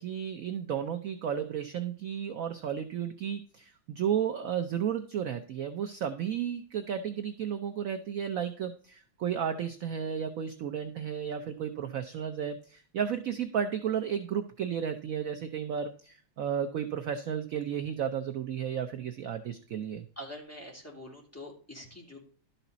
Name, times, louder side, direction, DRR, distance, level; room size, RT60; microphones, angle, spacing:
voice 1, 0.0-20.0, right 8 dB, 60° right, 7 dB, 0.9 m, -33 dB
voice 2, 20.2-22.2, left 1 dB, 5° left, -2 dB, 2.9 m, -45 dB
12.0 x 5.8 x 4.0 m, 0.44 s
omnidirectional pair, 2.1 m